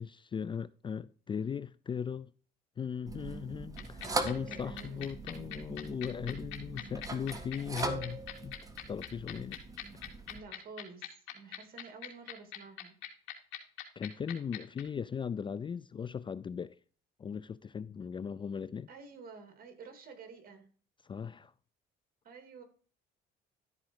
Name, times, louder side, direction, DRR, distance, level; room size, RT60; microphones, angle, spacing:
voice 1, 0.0-2.3 2.8-8.5 8.9-9.6 14.0-16.8 17.2-18.9 21.1-21.5, left 7 dB, 25° left, 0.4 m, -38 dB
sound 1, 3.1-10.4, right 2 dB, 20° right, 1.6 m, -40 dB
sound 2, 3.8-14.8, left 15 dB, 85° left, 2.5 m, -41 dB
voice 2, 4.5-5.0 6.7-7.0 10.3-13.0 18.9-20.7 22.2-22.6, right 4 dB, 50° right, 3.1 m, -50 dB
13.0 x 5.1 x 4.8 m
cardioid pair, 105°, 19 cm